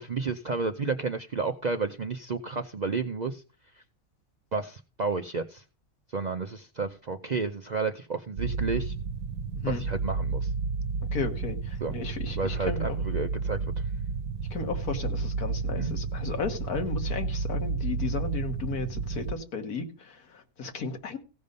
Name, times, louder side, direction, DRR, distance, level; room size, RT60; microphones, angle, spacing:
voice 1, 0.0-3.4 4.5-5.6 6.1-8.9 9.7-10.5 11.8-11.9 12.4-13.6 15.8-15.9, right 4 dB, 55° right, 0.5 m, -31 dB
sound 1, 8.4-19.3, right 4 dB, 80° right, 1.2 m, -31 dB
voice 2, 11.1-13.0 14.5-21.2, left 4 dB, 90° left, 1.9 m, -34 dB
16.0 x 5.4 x 5.2 m
omnidirectional pair, 1.5 m